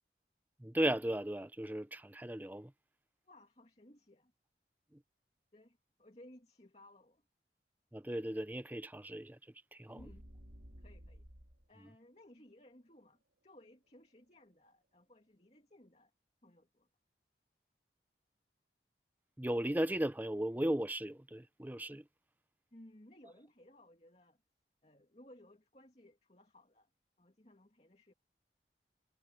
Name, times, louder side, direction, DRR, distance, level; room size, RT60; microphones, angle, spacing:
voice 1, 0.6-2.7 7.9-9.4 9.7-10.0 19.4-22.0, right 1 dB, 10° right, 0.6 m, -36 dB
voice 2, 3.2-4.3 5.5-7.2 9.9-10.2 10.8-11.3 11.7-16.1 16.4-16.9 22.7-24.4 24.8-26.9 27.2-28.1, left 1 dB, 35° left, 2.6 m, -60 dB
sound 1, 10.0-11.7, equal, 80° right, 3.8 m, -54 dB
head